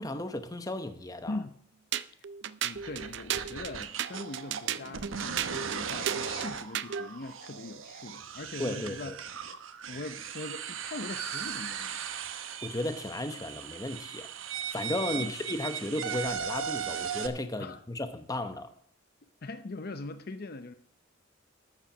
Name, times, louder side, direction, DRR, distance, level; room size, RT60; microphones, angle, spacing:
voice 1, 0.0-1.4 8.6-9.2 12.6-14.3 14.7-18.7, left 1 dB, 20° left, 1.0 m, -34 dB
sound 1, 1.9-7.1, right 9 dB, 60° right, 0.5 m, -34 dB
voice 2, 2.6-9.1 9.9-12.0 15.1-15.3 17.6-17.8 19.4-20.7, left 2 dB, 50° left, 0.6 m, -41 dB
sound 2, 2.7-17.3, right 7 dB, 75° right, 1.0 m, -38 dB
13.0 x 7.5 x 6.1 m
head